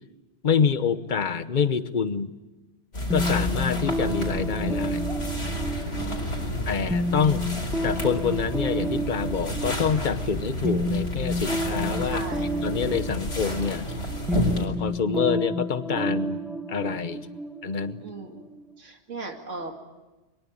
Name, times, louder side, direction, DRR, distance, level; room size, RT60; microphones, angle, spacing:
voice 1, 0.4-2.3 3.1-5.0 6.7-7.4 7.8-12.2 12.6-13.9 14.6-16.4 16.7-17.2 17.6-18.0, left 6 dB, 45° left, 12 dB, 1.1 m, -26 dB
sound 1, 2.9-14.7, equal, 80° left, 4.8 m, -31 dB
sound 2, 3.1-18.7, equal, ahead, 1.2 m, -31 dB
voice 2, 6.0-6.9 12.1-12.5 18.0-18.4 18.8-19.7, right 3 dB, 85° right, 3 dB, 2.6 m, -38 dB
23.0 x 23.0 x 8.7 m, 1.1 s
omnidirectional pair, 1.2 m